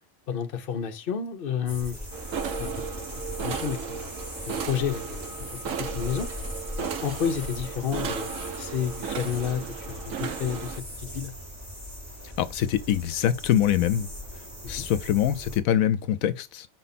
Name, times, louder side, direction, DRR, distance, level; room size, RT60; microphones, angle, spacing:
voice 1, 0.3-2.0 2.6-2.9 3.4-4.1 4.5-6.3 6.7-11.3 14.6-14.9, left 8 dB, 45° left, 0.9 m, -31 dB
sound 1, 1.7-15.6, left 1 dB, 10° right, 4.3 m, -39 dB
sound 2, 2.1-10.8, right 7 dB, 75° right, 1.2 m, -35 dB
voice 2, 12.4-14.1 14.7-16.7, left 11 dB, 85° left, 1.0 m, -24 dB
5.4 x 4.4 x 4.1 m
omnidirectional pair, 1.4 m